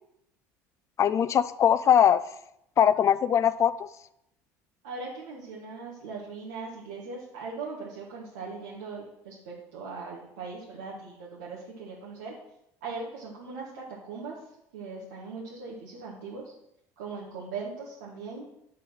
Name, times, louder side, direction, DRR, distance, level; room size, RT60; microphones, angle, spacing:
voice 1, 1.0-2.2 2.8-3.9, left 9 dB, 40° left, 0.4 m, -21 dB
voice 2, 4.8-12.3 12.8-14.4 14.7-16.5 17.0-18.5, right 4 dB, 85° right, 1.6 m, -39 dB
9.4 x 4.0 x 5.7 m
supercardioid pair, 85°, 8 cm